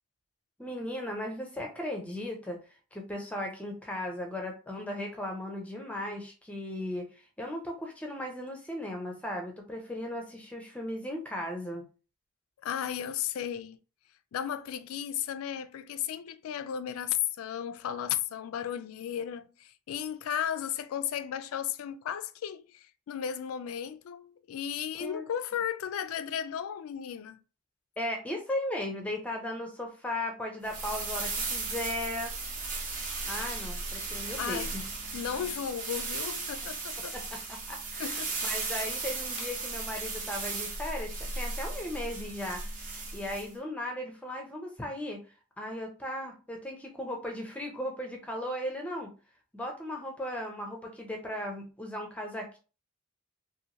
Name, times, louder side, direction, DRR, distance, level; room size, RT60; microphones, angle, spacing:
voice 1, 0.6-2.6 2.9-11.8 25.0-25.2 28.0-32.3 33.3-34.8 37.1-45.2 45.6-49.1 49.5-52.6, left 1 dB, 5° left, 0.5 m, -37 dB
voice 2, 12.6-13.8 14.3-27.4 34.4-34.8 35.1-37.2 38.0-38.3, left 9 dB, 85° left, 0.3 m, -34 dB
sound 1, 30.6-43.5, right 3 dB, 40° right, 0.7 m, -36 dB
2.7 x 2.5 x 2.8 m
head